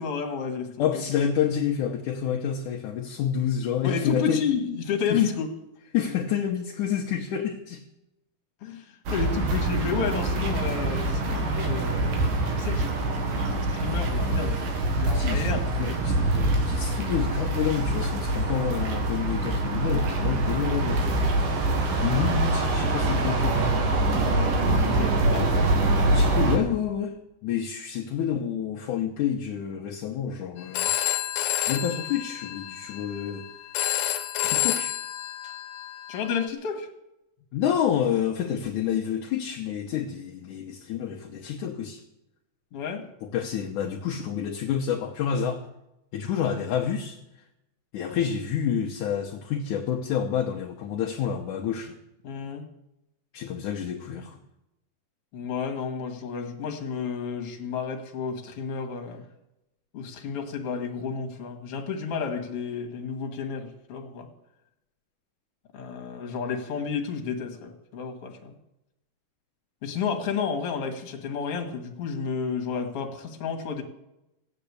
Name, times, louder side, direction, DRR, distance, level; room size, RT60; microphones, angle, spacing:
voice 1, 0.0-1.0 3.8-5.5 8.6-15.7 24.0-25.6 36.1-36.9 42.7-43.0 52.2-52.6 55.3-59.3 59.9-64.3 65.7-68.6 69.8-73.8, left 6 dB, 45° left, 3 dB, 2.5 m, -31 dB
voice 2, 0.8-4.4 5.1-5.3 5.9-7.8 15.1-21.0 22.0-23.8 26.0-27.2 27.4-30.9 31.7-33.5 33.9-34.1 34.4-35.0 37.5-42.0 43.2-45.6 46.1-47.2 47.9-52.0 53.3-54.4, left 8 dB, 70° left, 1 dB, 2.2 m, -28 dB
sound 1, 9.1-26.6, right 2 dB, 65° right, 3.6 m, -25 dB
Telephone, 30.6-36.5, left 12 dB, 90° left, 2.8 m, -29 dB
16.0 x 9.1 x 8.4 m, 0.89 s
omnidirectional pair, 4.2 m